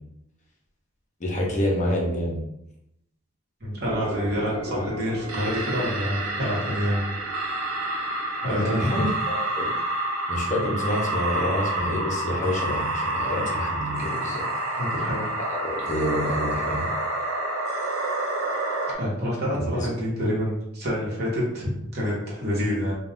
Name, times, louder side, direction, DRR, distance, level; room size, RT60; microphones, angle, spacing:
voice 1, 1.2-2.4 8.5-9.1 9.6-9.7 10.3-14.4 15.5-16.9 19.5-19.9, left 1 dB, 35° left, -1 dB, 0.6 m, -27 dB
voice 2, 3.6-7.1 8.4-9.1 14.8-15.3 19.0-22.9, equal, 50° right, -6 dB, 1.0 m, -27 dB
sound 1, 3.8-18.9, right 1 dB, 85° right, 0.6 m, -29 dB
2.4 x 2.2 x 3.4 m, 0.81 s
head